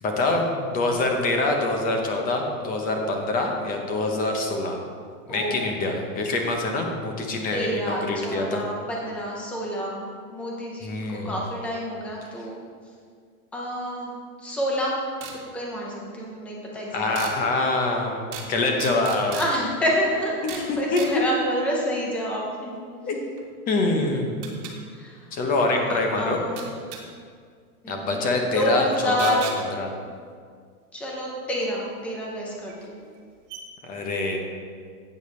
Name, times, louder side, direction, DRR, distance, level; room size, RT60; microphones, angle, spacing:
voice 1, 0.0-4.8 5.3-8.6 10.8-11.3 16.9-19.4 20.4-20.5 20.9-21.0 23.0-23.2 23.7-24.3 25.3-26.4 27.9-29.4 29.8-29.9 33.9-34.4, left 2 dB, 20° left, 2 dB, 0.9 m, -25 dB
voice 2, 5.3-5.6 7.5-10.0 10.3-12.6 13.5-14.1 14.4-15.0 15.5-17.1 19.3-23.1 23.9-24.6 24.9-25.3 25.9-26.6 27.8-28.3 28.5-29.6 30.9-33.0, equal, 5° left, -3 dB, 0.4 m, -28 dB
sound 1, 15.2-15.4 17.2-17.4 18.3-18.5 18.8-19.5 20.5-20.7 21.0-21.1 23.4-23.5 24.4-24.7 26.6-27.0 29.2-29.6 31.6-31.7 32.7-32.8 33.2-33.3 33.5-33.6, right 7 dB, 40° right, 1.6 m, -36 dB
12.0 x 8.8 x 3.2 m, 2.1 s
supercardioid pair, 160°, 45 cm